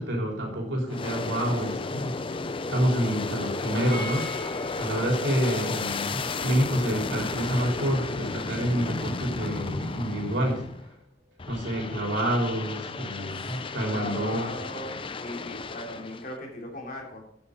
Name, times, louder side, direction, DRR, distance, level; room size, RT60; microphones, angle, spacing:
voice 1, 0.0-2.1 2.7-4.3 4.8-10.6 11.5-14.5, equal, 85° right, -1 dB, 3.7 m, -28 dB
Aircraft, 0.9-10.9 11.4-16.4, left 3 dB, 30° left, 0.5 m, -33 dB
sound 1, 3.9-9.7 9.9-10.0 10.3-10.4, right 1 dB, 50° right, 1.5 m, -46 dB
voice 2, 13.9-17.2, left 1 dB, 50° left, 0 dB, 2.9 m, -38 dB
9.3 x 8.1 x 5.1 m, 0.71 s
head